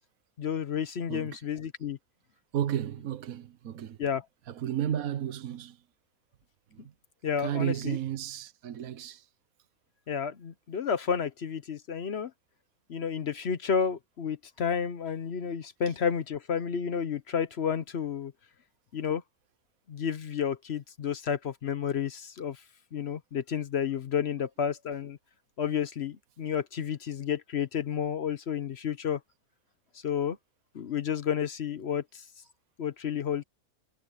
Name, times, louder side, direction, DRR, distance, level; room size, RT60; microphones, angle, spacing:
voice 1, 0.4-2.0 4.0-4.2 7.2-8.0 10.1-12.3 12.9-18.3 18.9-19.2 19.9-22.6 22.9-25.2 25.6-29.2 30.0-30.4 30.7-32.2 32.8-33.4, left 7 dB, 50° left, 1.0 m, -31 dB
voice 2, 1.1-1.4 2.5-4.1 4.5-5.8 6.7-6.9 7.4-9.2, right 10 dB, 75° right, 1.4 m, -33 dB
omnidirectional pair, 1.5 m